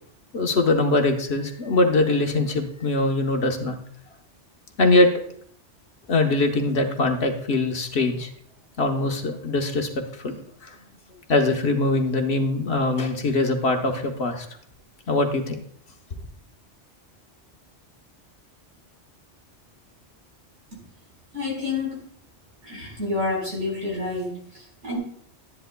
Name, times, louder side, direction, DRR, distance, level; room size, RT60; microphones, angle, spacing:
voice 1, 0.3-3.8 4.8-5.2 6.1-8.3 8.8-10.4 10.6-10.8 11.3-14.5 15.1-15.6, left 2 dB, 60° left, 4 dB, 1.2 m, -22 dB
voice 2, 21.3-22.0 22.6-25.0, left 3 dB, 70° right, -3 dB, 4.8 m, -29 dB
12.5 x 10.5 x 2.2 m, 0.62 s
omnidirectional pair, 1.2 m